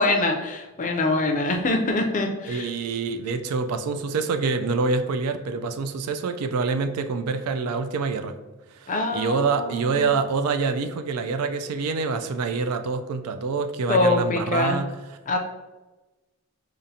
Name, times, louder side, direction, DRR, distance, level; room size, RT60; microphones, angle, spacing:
voice 1, 0.0-2.7 8.9-10.1 13.9-14.8 15.3-15.4, left 2 dB, 35° left, 3 dB, 0.4 m, -24 dB
voice 2, 2.5-8.3 8.8-14.9, right 4 dB, 80° right, 8 dB, 0.4 m, -26 dB
5.1 x 2.5 x 2.7 m, 1.1 s
head